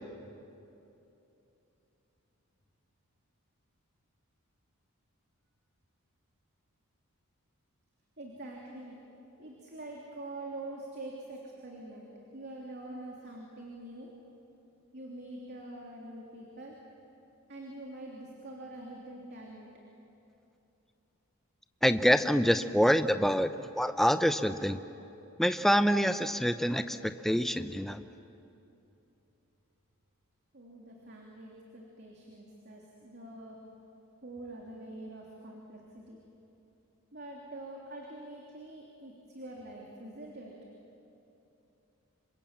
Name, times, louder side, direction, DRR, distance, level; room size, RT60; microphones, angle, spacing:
voice 1, 8.2-9.0 9.4-14.1 14.9-16.8 17.5-19.7 30.5-33.6 34.2-36.2 37.1-40.5, right 1 dB, 45° right, -2 dB, 3.2 m, -45 dB
voice 2, 21.8-23.5 23.8-24.8 25.4-28.0, equal, ahead, 9 dB, 0.7 m, -26 dB
28.0 x 26.0 x 7.5 m, 2.9 s
head